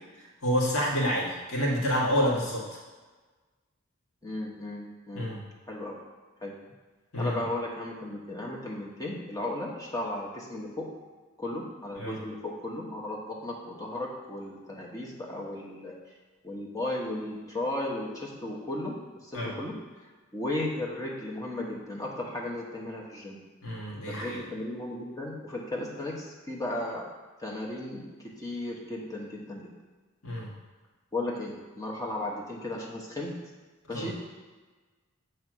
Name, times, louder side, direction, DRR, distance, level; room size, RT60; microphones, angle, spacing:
voice 1, 0.4-2.8 5.1-5.4 7.1-7.4 12.0-12.1 19.3-19.5 23.6-24.4 30.2-30.5 33.9-34.1, equal, 80° left, -4 dB, 1.6 m, -28 dB
voice 2, 4.2-5.3 5.7-5.9 6.4-6.5 7.2-10.9 11.4-15.9 16.4-19.0 19.2-19.7 20.3-23.4 24.1-27.0 27.4-28.1 28.4-29.7 31.1-33.3 33.9-34.1, left 1 dB, 15° left, -3 dB, 1.1 m, -35 dB
7.4 x 3.3 x 6.1 m, 1.3 s
head